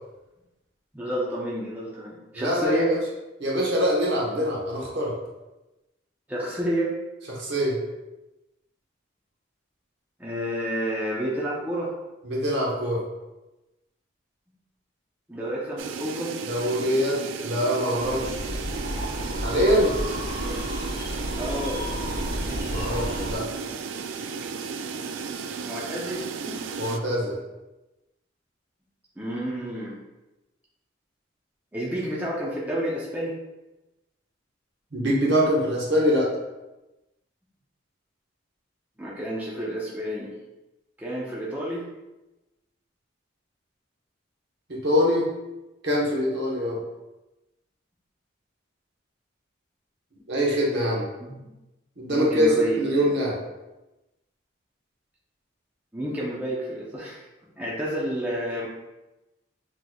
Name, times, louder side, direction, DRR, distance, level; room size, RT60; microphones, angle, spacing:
voice 1, 0.9-2.9 6.3-6.9 10.2-11.9 15.3-16.3 20.4-20.5 21.3-21.8 25.6-26.6 29.2-29.9 31.7-33.3 39.0-40.3 41.0-41.8 51.2-51.4 52.1-53.3 55.9-57.2 57.6-58.7, equal, 10° right, -6 dB, 0.6 m, -30 dB
voice 2, 2.3-2.8 3.4-5.1 7.3-7.8 12.2-13.0 16.5-18.4 19.4-19.9 22.7-23.5 26.8-27.4 34.9-36.3 44.7-45.3 45.8-46.8 50.3-51.0 52.0-53.4, equal, 60° right, -3 dB, 1.1 m, -24 dB
sound 1, 15.8-27.0, right 5 dB, 75° right, 0.3 m, -34 dB
sound 2, 18.0-23.4, equal, 50° left, 1.4 m, -32 dB
6.1 x 3.1 x 2.3 m, 1.0 s
head